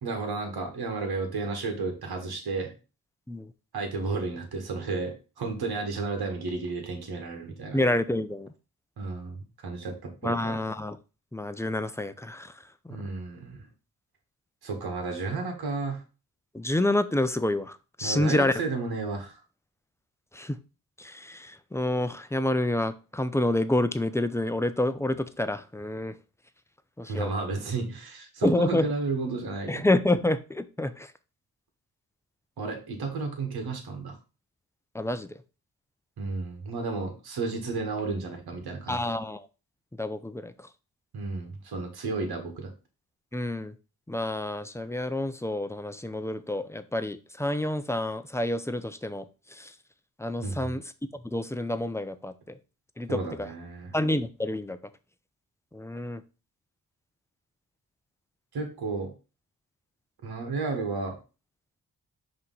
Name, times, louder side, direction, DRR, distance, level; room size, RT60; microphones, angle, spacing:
voice 1, 0.0-2.7 3.7-7.8 9.0-9.4 9.6-10.6 12.9-13.7 14.6-16.0 18.0-19.4 27.1-29.9 32.6-34.2 36.2-39.0 41.1-42.7 50.4-50.7 53.1-53.9 58.5-59.1 60.2-61.2, right 3 dB, 80° right, 3 dB, 1.8 m, -32 dB
voice 2, 7.7-8.5 10.2-11.0 11.3-12.5 16.5-18.5 20.3-20.6 21.0-26.2 27.0-27.3 28.4-28.9 29.7-31.1 34.9-35.3 38.9-39.5 40.0-40.7 43.3-43.7 44.1-49.3 49.5-49.7 50.2-50.8 51.2-52.6 53.0-53.5 53.9-54.8 55.7-56.2, left 1 dB, 5° left, 11 dB, 0.7 m, -28 dB
5.6 x 3.3 x 5.5 m, 0.32 s
cardioid pair, 55°, 37 cm